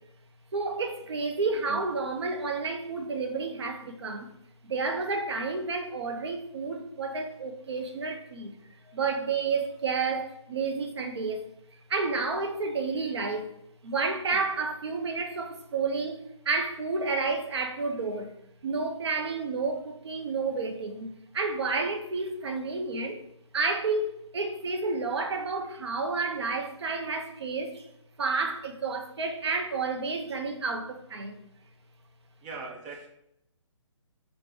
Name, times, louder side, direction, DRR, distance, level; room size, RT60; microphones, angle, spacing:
voice 1, 0.5-4.3 4.6-8.5 8.9-11.4 11.7-13.5 13.8-18.3 18.6-23.2 23.5-27.9 28.2-31.4, right 4 dB, 55° right, 0.8 m, -30 dB
voice 2, 32.4-33.1, right 4 dB, 10° right, 0.4 m, -40 dB
5.1 x 2.4 x 3.5 m
figure-of-eight pair, 145°, 16 cm